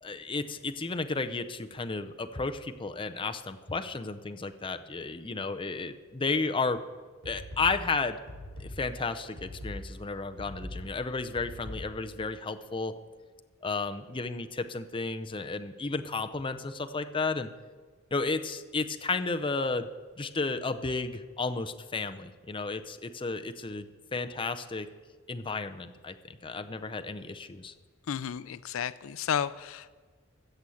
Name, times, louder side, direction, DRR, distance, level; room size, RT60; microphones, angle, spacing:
voice 1, 0.0-6.8 7.2-8.2 8.6-12.9 13.6-17.5 18.1-19.9 20.2-23.9 24.1-24.9 25.3-26.2 26.4-27.7, left 3 dB, 25° left, 8 dB, 0.6 m, -33 dB
sound 1, 7.2-12.2, left 1 dB, 85° right, 4.8 m, -42 dB
voice 2, 28.1-30.0, left 8 dB, 85° left, 15 dB, 0.4 m, -32 dB
14.5 x 7.1 x 7.7 m, 1.4 s
head